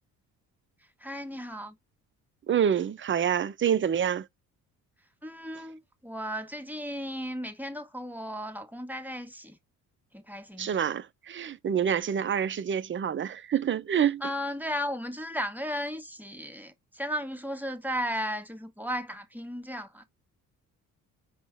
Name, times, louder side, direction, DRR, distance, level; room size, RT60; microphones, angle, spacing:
voice 1, 1.0-1.8 5.2-9.6 10.1-10.8 14.2-20.0, equal, 5° right, 1.2 m, -35 dB
voice 2, 2.5-4.3 10.6-14.2, right 8 dB, 25° right, 0.6 m, -27 dB
5.3 x 2.2 x 4.4 m
hypercardioid pair, 45°, 45 cm